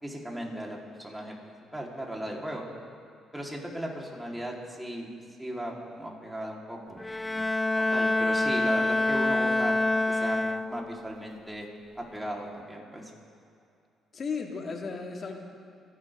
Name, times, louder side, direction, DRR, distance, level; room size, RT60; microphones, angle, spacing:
voice 1, 0.0-2.7 3.3-5.1 5.4-7.0 7.7-9.7 10.1-11.7 11.9-13.1, right 1 dB, 5° right, -2 dB, 4.2 m, -37 dB
Bowed string instrument, 7.0-11.0, left 2 dB, 20° left, 0.4 m, -26 dB
voice 2, 14.1-15.4, left 5 dB, 50° left, 2 dB, 2.4 m, -35 dB
27.5 x 11.5 x 3.8 m, 2.5 s
hypercardioid pair, 55°, 0 cm